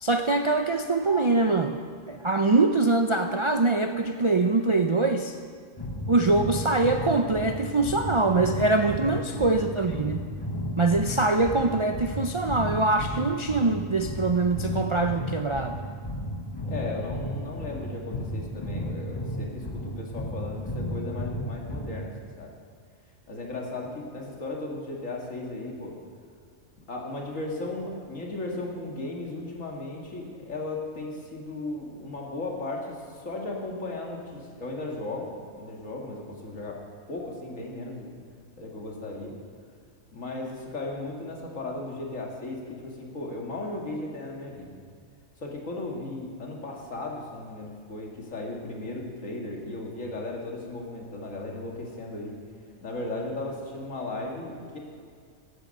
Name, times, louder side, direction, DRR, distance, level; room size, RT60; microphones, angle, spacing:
voice 1, 0.0-1.8 2.1-5.4 6.1-10.2 10.8-15.8, right 3 dB, 45° right, 5 dB, 0.4 m, -23 dB
sound 1, 5.8-22.2, equal, 20° left, 0.8 m, -34 dB
voice 2, 8.7-9.3 16.6-22.5 23.3-26.0 26.9-36.8 37.1-38.1 38.6-39.3 40.1-44.7 45.4-52.3 52.8-54.8, left 2 dB, 75° left, -1 dB, 2.5 m, -36 dB
15.5 x 11.5 x 5.5 m, 2.1 s
omnidirectional pair, 1.4 m